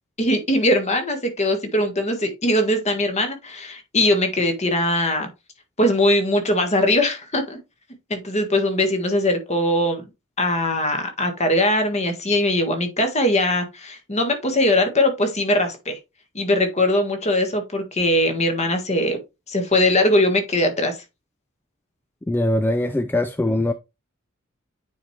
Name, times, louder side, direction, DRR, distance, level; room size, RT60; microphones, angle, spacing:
voice 1, 0.2-5.3 5.8-7.6 8.1-10.0 10.4-16.0 16.3-19.2 19.5-21.0, left 1 dB, 30° left, 1.7 m, -21 dB
voice 2, 22.3-23.7, left 1 dB, 10° left, 0.3 m, -21 dB
9.2 x 4.3 x 3.2 m
head